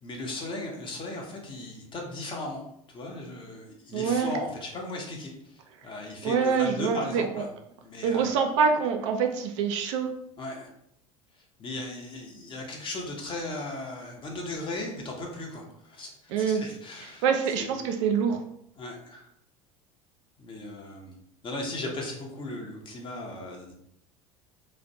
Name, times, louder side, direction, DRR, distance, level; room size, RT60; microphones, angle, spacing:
voice 1, 0.0-7.5 7.8-8.5 10.4-10.7 11.6-17.3 17.6-17.7 18.8-19.3 20.4-21.1 21.4-23.7, left 2 dB, 30° left, 0 dB, 0.7 m, -37 dB
voice 2, 3.9-4.3 6.2-7.4 8.0-10.1 16.3-16.6 17.2-18.4, right 6 dB, 60° right, 5 dB, 0.4 m, -25 dB
2.5 x 2.0 x 2.6 m, 0.72 s
figure-of-eight pair, 75°, 18 cm